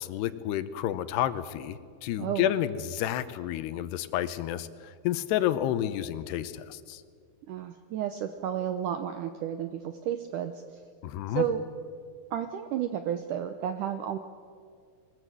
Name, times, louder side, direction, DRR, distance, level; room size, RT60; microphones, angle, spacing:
voice 1, 0.0-7.0 11.0-11.4, left 12 dB, 90° left, 12 dB, 3.0 m, -30 dB
voice 2, 7.5-10.8 11.3-11.6 12.3-14.2, right 9 dB, 80° right, 8 dB, 1.8 m, -32 dB
22.0 x 20.0 x 8.2 m, 2.2 s
omnidirectional pair, 4.7 m